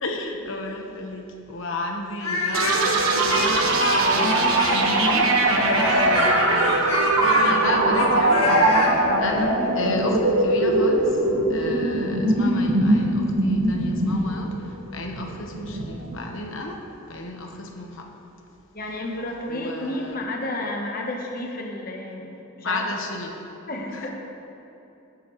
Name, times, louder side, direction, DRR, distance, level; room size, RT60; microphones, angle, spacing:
voice 1, 0.0-5.3 6.1-11.2 11.5-16.8 17.1-18.1 19.5-20.2 22.6-23.3 23.9-24.1, left 2 dB, 70° left, 2 dB, 1.1 m, -32 dB
Speech, 2.2-5.1 5.7-8.9, left 3 dB, 85° left, 1.8 m, -27 dB
sound 1, 2.5-16.2, right 2 dB, 80° right, 1.4 m, -21 dB
voice 2, 18.7-22.8 23.7-24.1, left 1 dB, 45° left, 0 dB, 1.1 m, -31 dB
18.0 x 9.1 x 3.1 m, 3.0 s
head